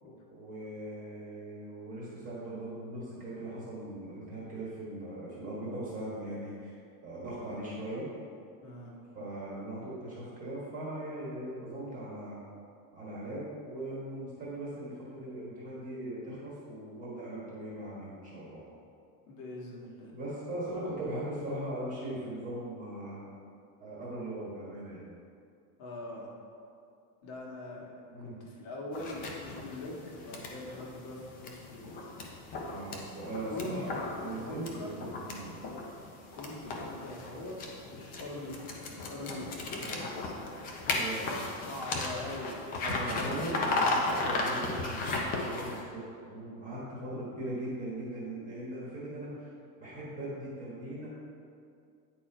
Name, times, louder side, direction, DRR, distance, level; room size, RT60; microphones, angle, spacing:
voice 1, 0.3-6.8 7.0-8.1 9.1-12.4 12.9-18.6 20.1-23.2 23.8-25.1 28.1-28.4 32.7-35.6 40.9-41.4 42.8-49.5 49.8-51.1, right 1 dB, 20° right, -7 dB, 1.3 m, -39 dB
voice 2, 8.6-9.0 19.3-20.1 20.7-20.8 25.8-26.4 27.2-27.9 28.2-31.8 33.5-33.8 34.2-35.1 36.3-42.7 44.0-44.2, left 2 dB, 50° left, -2 dB, 1.6 m, -43 dB
sound 1, 28.9-45.8, left 2 dB, 20° left, 0.4 m, -36 dB
9.2 x 4.3 x 4.4 m, 2.4 s
supercardioid pair, 175°, 44 cm